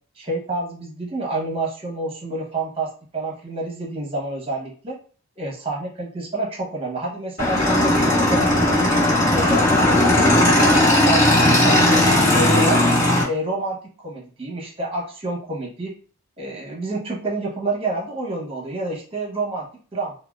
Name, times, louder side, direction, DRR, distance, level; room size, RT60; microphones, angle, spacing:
voice 1, 0.2-5.0 5.4-9.0 9.3-12.8 13.2-15.9 16.4-20.1, right 2 dB, 25° right, -2 dB, 0.8 m, -28 dB
Motorcycle / Engine, 7.4-13.2, left 1 dB, 35° left, 1.3 m, -17 dB
3.5 x 2.1 x 2.2 m, 0.42 s
head